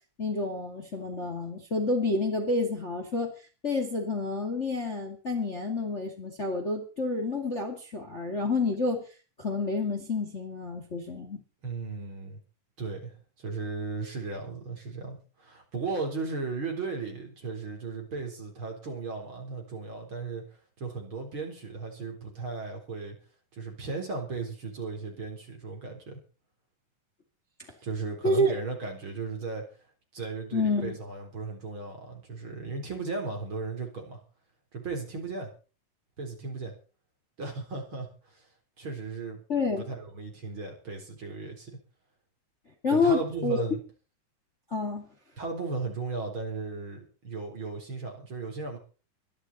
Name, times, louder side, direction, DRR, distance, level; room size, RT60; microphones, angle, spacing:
voice 1, 0.2-3.3 3.6-9.0 9.4-11.4 28.2-28.5 30.5-31.0 39.5-39.8 42.8-43.6 44.7-45.1, left 2 dB, 25° left, 4 dB, 2.3 m, -28 dB
voice 2, 11.6-12.4 12.8-20.4 20.8-23.2 23.5-26.2 27.8-29.7 30.1-34.2 34.7-35.5 36.2-36.7 37.4-38.5 38.8-39.4 39.8-41.8 42.9-43.8 45.4-48.8, right 4 dB, 40° right, 3 dB, 4.6 m, -36 dB
24.0 x 11.0 x 4.3 m, 0.36 s
omnidirectional pair, 3.6 m